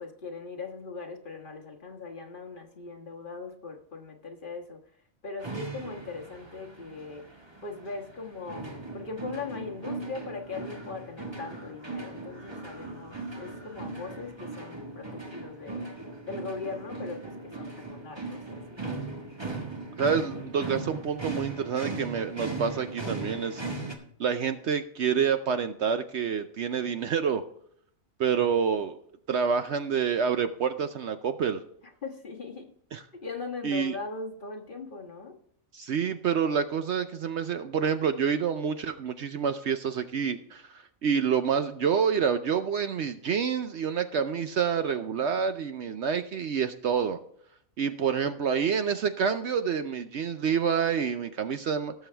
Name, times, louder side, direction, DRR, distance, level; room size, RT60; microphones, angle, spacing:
voice 1, 0.0-4.8 5.2-7.3 7.6-15.9 16.3-18.8 32.0-32.7 33.2-35.4, left 4 dB, 40° left, 2 dB, 1.5 m, -40 dB
sound 1, 5.4-23.9, right 3 dB, 20° right, 1.5 m, -38 dB
voice 2, 20.0-23.6 24.2-27.4 28.2-29.0 29.3-31.6 32.9-33.0 33.6-33.9 35.7-47.2 47.8-51.9, right 7 dB, 60° right, 9 dB, 0.8 m, -28 dB
18.0 x 7.0 x 3.4 m, 0.67 s
omnidirectional pair, 1.4 m